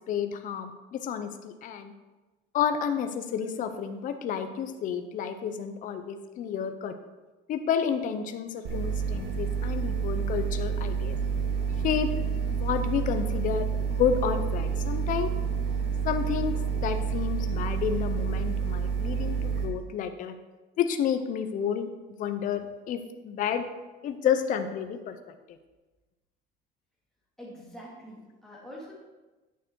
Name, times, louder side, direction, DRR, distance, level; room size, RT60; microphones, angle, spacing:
voice 1, 0.1-1.9 2.5-6.9 7.5-11.2 11.8-12.1 12.5-13.7 14.0-15.3 16.0-16.6 16.8-20.4 20.8-21.9 22.2-23.6 24.0-25.2, left 8 dB, 40° left, 8 dB, 0.6 m, -30 dB
sound 1, 8.6-19.7, right 6 dB, 65° right, 1.7 m, -29 dB
voice 2, 27.4-28.9, equal, ahead, -5 dB, 2.2 m, -45 dB
9.2 x 6.6 x 4.5 m, 1.2 s
cardioid pair, 170°, 21 cm